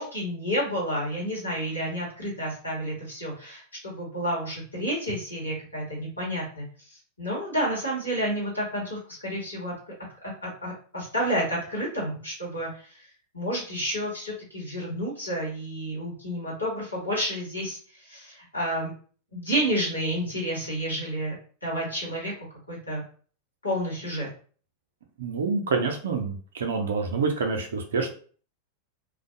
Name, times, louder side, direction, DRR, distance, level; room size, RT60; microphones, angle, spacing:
voice 1, 0.0-9.7 10.2-13.0 13.3-18.9 19.3-21.3 21.6-22.3 22.7-23.0 23.6-24.3, equal, 80° left, -4 dB, 1.2 m, -30 dB
voice 2, 25.2-28.1, right 4 dB, 65° right, 3 dB, 0.5 m, -27 dB
2.5 x 2.1 x 2.5 m, 0.43 s
figure-of-eight pair, 90°, 0 cm